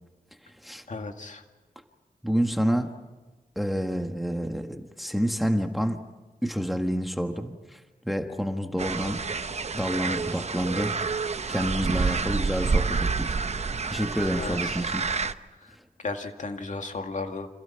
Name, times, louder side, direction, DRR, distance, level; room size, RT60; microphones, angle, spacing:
voice 1, 0.9-1.4 14.4-14.8 16.0-17.5, left 3 dB, 60° left, 4 dB, 2.3 m, -34 dB
voice 2, 2.2-2.9 3.5-6.0 6.4-7.8 8.0-9.2 9.7-11.0 11.5-15.0, equal, ahead, 5 dB, 1.6 m, -28 dB
sound 1, 8.8-15.3, right 4 dB, 50° right, 0.8 m, -28 dB
30.0 x 27.0 x 5.8 m, 1.2 s
wide cardioid pair, 120°, 15 cm